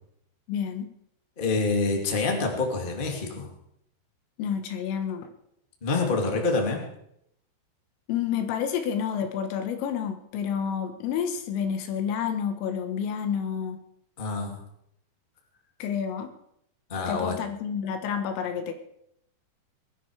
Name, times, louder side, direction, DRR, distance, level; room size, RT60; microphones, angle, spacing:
voice 1, 0.5-0.9 4.4-5.3 8.1-13.8 15.8-16.3 17.1-18.7, left 7 dB, 90° left, 7 dB, 4.2 m, -29 dB
voice 2, 1.4-3.5 5.8-6.8 14.2-14.6 16.9-17.4, left 3 dB, 25° left, 1 dB, 1.1 m, -26 dB
21.0 x 13.0 x 4.9 m, 0.76 s
omnidirectional pair, 5.7 m